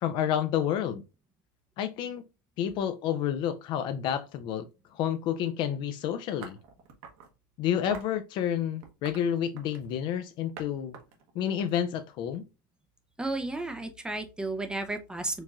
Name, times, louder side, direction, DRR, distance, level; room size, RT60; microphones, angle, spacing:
voice 1, 0.0-1.0 1.8-2.2 2.6-4.7 4.9-6.6 7.6-11.0 11.3-12.5, left 9 dB, 45° left, 0.4 m, -29 dB
sound 1, 6.4-7.3 7.9-8.2 8.8-9.9 10.6-10.7 10.9-12.4, right 6 dB, 60° right, 1.0 m, -46 dB
voice 2, 13.2-15.4, right 2 dB, 5° right, 0.5 m, -33 dB
4.5 x 2.9 x 2.4 m
supercardioid pair, 130°, 11 cm